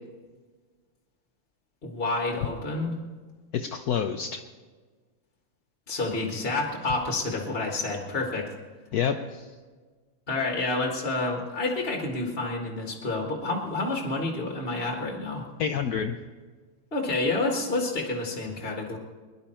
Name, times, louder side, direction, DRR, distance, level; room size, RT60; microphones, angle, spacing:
voice 1, 1.8-3.0 5.9-8.5 10.3-15.5 16.9-19.0, left 2 dB, 30° left, 1 dB, 1.7 m, -29 dB
voice 2, 3.5-4.4 8.9-9.4 15.6-16.2, left 7 dB, 70° left, 5 dB, 0.9 m, -28 dB
22.5 x 11.0 x 4.4 m, 1.4 s
omnidirectional pair, 2.3 m